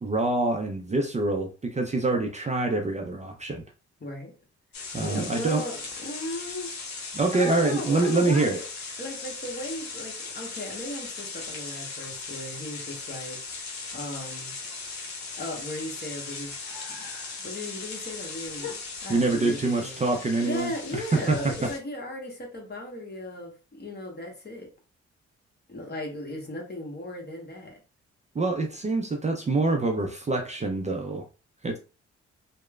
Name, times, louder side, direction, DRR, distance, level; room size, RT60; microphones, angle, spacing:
voice 1, 0.0-3.6 4.9-5.6 7.1-8.6 19.1-21.0 21.3-21.7 28.3-31.3 31.6-31.8, right 3 dB, 25° right, 0.5 m, -26 dB
voice 2, 4.0-4.3 5.0-6.7 7.3-8.7 9.0-14.6 15.4-16.5 16.9-17.1 17.4-20.0 20.4-24.7 25.7-27.8, left 1 dB, 35° left, 1.1 m, -36 dB
sound 1, 4.7-21.8, left 4 dB, 60° left, 0.9 m, -38 dB
2.9 x 2.1 x 2.3 m
supercardioid pair, 55°, 30 cm